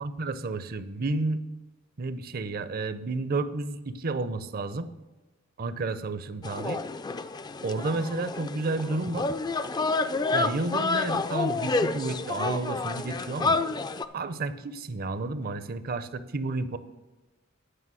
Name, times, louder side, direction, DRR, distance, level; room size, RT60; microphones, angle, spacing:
voice 1, 0.0-1.4 2.0-4.9 5.6-6.8 7.6-9.3 10.3-13.6 14.1-16.8, right 3 dB, 50° right, 13 dB, 0.6 m, -31 dB
sound 1, 6.4-14.1, left 3 dB, 20° left, 0.3 m, -29 dB
9.9 x 5.6 x 6.2 m, 1.1 s
head